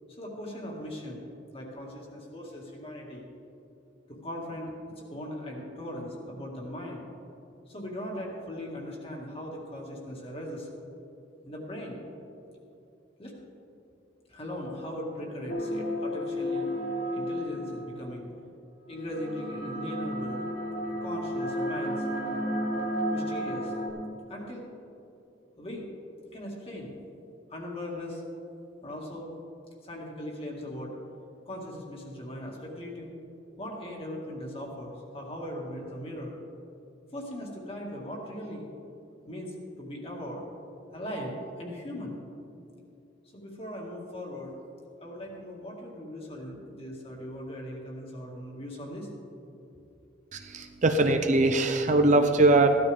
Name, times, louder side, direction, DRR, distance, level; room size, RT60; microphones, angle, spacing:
voice 1, 0.2-1.3 1.5-3.3 4.1-7.0 7.7-10.7 11.5-12.0 13.2-13.3 14.3-16.7 17.1-18.3 18.9-20.4 21.0-22.1 23.1-23.7 24.3-24.6 25.6-25.9 26.3-27.0 27.5-28.2 28.8-29.3 29.8-30.9 31.4-33.1 33.6-36.4 37.1-38.7 39.2-40.4 40.9-42.2 43.3-44.5 45.0-49.1, left 1 dB, 30° left, -2 dB, 2.2 m, -39 dB
sound 1, 15.5-18.0 18.9-23.9, equal, 55° left, 3.1 m, -32 dB
voice 2, 50.3-52.8, right 2 dB, 40° right, 6 dB, 0.6 m, -22 dB
15.5 x 12.5 x 3.6 m, 2.7 s
head